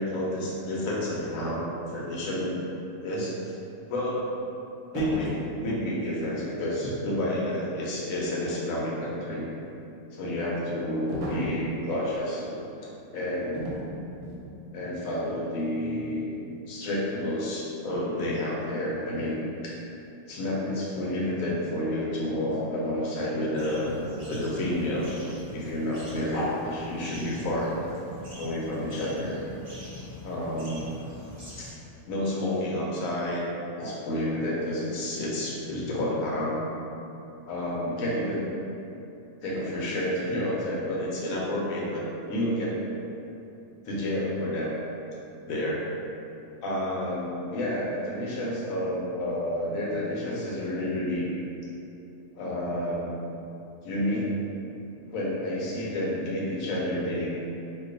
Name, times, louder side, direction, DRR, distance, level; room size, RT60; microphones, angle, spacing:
voice 1, 0.0-2.5 3.0-3.3 3.8-4.2 4.9-9.5 10.1-12.6 13.1-13.6 14.7-16.3 16.7-19.4 19.6-19.8 20.3-25.1 25.5-27.7 28.4-29.4 30.2-31.0 31.6-31.7 32.1-33.5 33.8-36.6 37.4-38.5 39.4-42.0 42.3-42.8 43.8-44.7 45.5-45.8 46.6-51.3 52.3-53.1 53.8-54.3 55.1-57.3, left 1 dB, 70° left, -5 dB, 1.0 m, -30 dB
sound 1, 4.9-5.5 11.1-11.6 13.5-13.9 14.2-14.5, equal, 65° right, 0.9 m, -33 dB
sound 2, 23.6-31.7, left 1 dB, 40° right, 0.7 m, -43 dB
2.6 x 2.3 x 3.7 m, 2.8 s
omnidirectional pair, 1.6 m